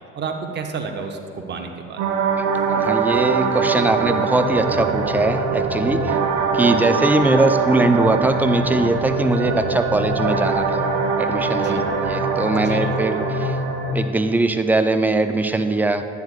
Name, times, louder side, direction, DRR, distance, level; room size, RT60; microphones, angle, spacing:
voice 1, 0.1-2.0 11.5-11.8 12.5-12.9, right 5 dB, 30° right, 3 dB, 0.9 m, -31 dB
sound 1, 2.0-13.9, right 4 dB, 60° right, 1.1 m, -22 dB
voice 2, 2.7-6.2 6.5-10.9 11.2-13.6 13.9-16.0, right 2 dB, 5° right, 7 dB, 0.3 m, -21 dB
10.5 x 8.0 x 2.5 m, 2.5 s
hypercardioid pair, 75°, 37 cm